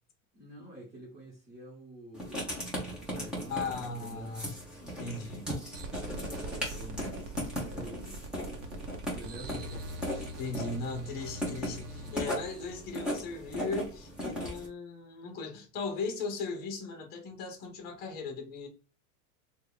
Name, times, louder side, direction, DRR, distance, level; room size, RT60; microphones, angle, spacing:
voice 1, 0.3-2.7 3.0-4.4 6.3-8.2 9.2-9.6 12.0-12.5, right 1 dB, 25° right, 1.2 m, -48 dB
Writing, 2.1-14.7, equal, ahead, 0.4 m, -38 dB
voice 2, 3.5-4.5 4.8-5.5 9.5-9.7 10.1-18.7, left 4 dB, 25° left, 0.8 m, -38 dB
sound 1, 5.7-13.9, right 2 dB, 55° right, 0.9 m, -43 dB
3.3 x 2.3 x 3.6 m
supercardioid pair, 165°, 40 cm